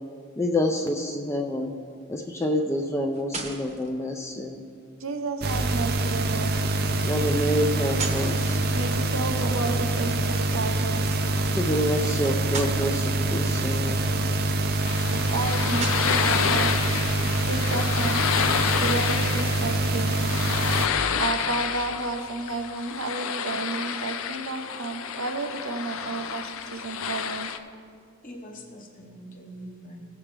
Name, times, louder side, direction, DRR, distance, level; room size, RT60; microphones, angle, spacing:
voice 1, 0.4-1.7 2.1-4.6 7.0-8.6 11.6-14.1, left 1 dB, 15° left, 2 dB, 0.5 m, -27 dB
sound 1, 2.9-3.9 5.8-6.3 7.7-9.1 11.0-11.2 11.9-12.0 12.4-12.8 14.1-14.8 15.6-16.5, right 3 dB, 35° right, 1.0 m, -36 dB
voice 2, 5.0-6.6 8.7-11.0 15.1-16.8 17.4-18.2 18.8-20.3 21.2-27.5, right 3 dB, 80° right, 6 dB, 0.8 m, -32 dB
sound 2, 5.4-20.9, right 2 dB, 50° right, 0.6 m, -25 dB
sound 3, 14.8-27.6, left 7 dB, 80° left, 0.5 m, -29 dB
voice 3, 28.2-30.0, equal, 40° left, 2 dB, 1.2 m, -44 dB
16.0 x 7.2 x 3.4 m, 2.3 s
head